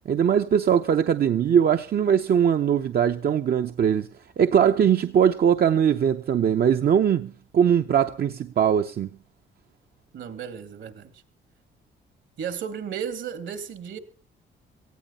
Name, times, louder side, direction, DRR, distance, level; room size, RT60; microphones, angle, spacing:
voice 1, 0.1-4.1 4.4-9.1, right 8 dB, 50° right, 0.8 m, -21 dB
voice 2, 10.1-11.2 12.4-14.0, right 7 dB, 70° right, 2.5 m, -34 dB
18.0 x 15.5 x 4.2 m
cardioid pair, 90°, 20 cm